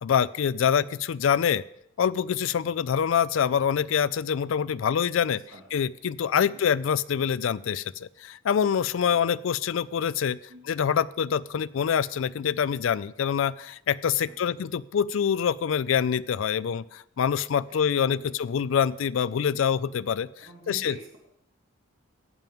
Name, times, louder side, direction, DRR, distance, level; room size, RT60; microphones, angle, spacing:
voice 1, 0.0-1.6 2.0-5.4 5.7-10.4 10.7-20.3 20.7-20.9, left 7 dB, 70° left, 18 dB, 0.3 m, -25 dB
voice 2, 5.2-5.6 6.4-6.6 9.1-9.2 10.5-10.7 14.3-14.5 17.7-18.4 20.4-21.2, right 1 dB, 75° right, -1 dB, 2.4 m, -47 dB
15.0 x 9.0 x 3.6 m, 0.77 s
head